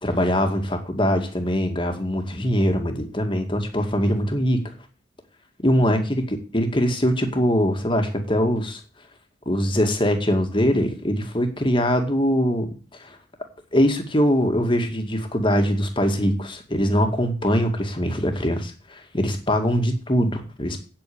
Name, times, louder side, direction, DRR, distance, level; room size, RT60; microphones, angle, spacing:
voice 1, 0.0-4.6 5.6-8.8 9.5-12.7 13.0-13.2 13.7-20.8, equal, 25° left, 5 dB, 2.2 m, -22 dB
9.1 x 8.7 x 8.6 m, 0.36 s
head